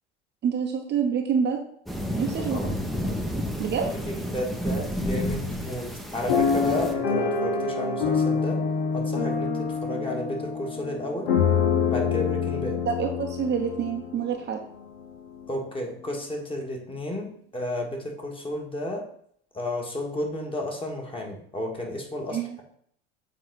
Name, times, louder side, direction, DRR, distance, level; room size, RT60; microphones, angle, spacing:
voice 1, 0.4-1.6 2.2-2.8 3.1-3.9 12.9-14.6 22.3-22.6, right 7 dB, 30° right, 2 dB, 0.9 m, -27 dB
sound 1, 1.9-6.9, equal, ahead, 0.9 m, -31 dB
voice 2, 2.4-2.7 4.1-8.6 8.9-11.3 11.9-12.8 15.5-17.3 17.5-19.0 19.5-22.6, left 1 dB, 15° left, 1 dB, 1.8 m, -32 dB
sound 2, 6.3-14.4 15.0-15.1 15.3-15.6, left 5 dB, 70° left, 1.5 m, -26 dB
7.4 x 4.2 x 4.1 m, 0.64 s
figure-of-eight pair, 75°, 32 cm